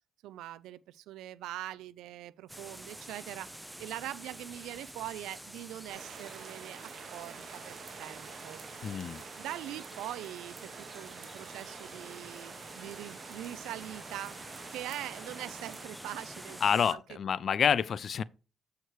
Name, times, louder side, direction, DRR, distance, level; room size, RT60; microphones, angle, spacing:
voice 1, 0.2-8.6 9.4-14.4 14.7-17.2, right 13 dB, 90° right, 0.3 m, -43 dB
sound 1, 2.5-16.9, right 1 dB, 5° right, 0.8 m, -48 dB
sound 2, 5.9-15.9, right 7 dB, 60° right, 1.1 m, -48 dB
voice 2, 8.8-9.2 16.6-18.2, left 7 dB, 55° left, 0.3 m, -28 dB
7.9 x 4.7 x 4.6 m
cardioid pair, 90°, 0 cm